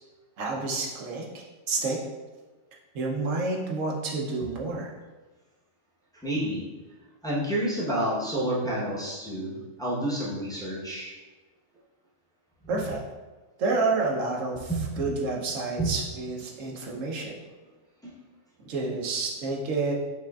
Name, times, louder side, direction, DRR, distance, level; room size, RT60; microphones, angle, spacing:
voice 1, 0.4-2.0 2.9-4.9 12.7-13.0 13.6-14.7 15.0-17.3 18.6-19.9, right 3 dB, 75° right, -1 dB, 1.2 m, -29 dB
voice 2, 6.2-6.6 7.2-11.1 14.7-14.9 15.8-15.9, right 1 dB, 5° left, -7 dB, 0.8 m, -29 dB
5.8 x 3.4 x 2.4 m, 1.2 s
omnidirectional pair, 1.4 m